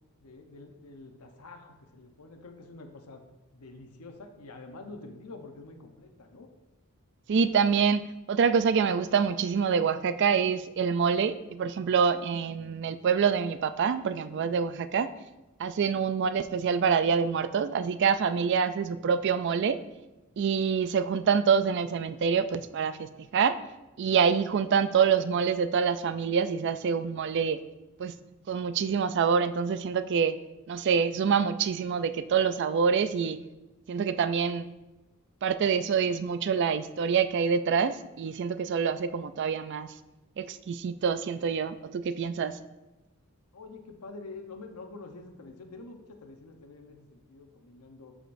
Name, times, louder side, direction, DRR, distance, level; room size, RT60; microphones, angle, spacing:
voice 1, 0.2-3.2 3.5-6.5 43.5-48.2, left 3 dB, 85° left, 5 dB, 0.9 m, -47 dB
voice 2, 7.3-15.1 15.6-19.8 20.4-23.6 24.0-27.6 28.0-28.1 28.5-30.4 30.7-33.4 33.9-34.7 35.4-39.9 40.4-42.6, right 6 dB, 50° right, 13 dB, 0.3 m, -26 dB
12.0 x 5.0 x 2.6 m, 1.0 s
head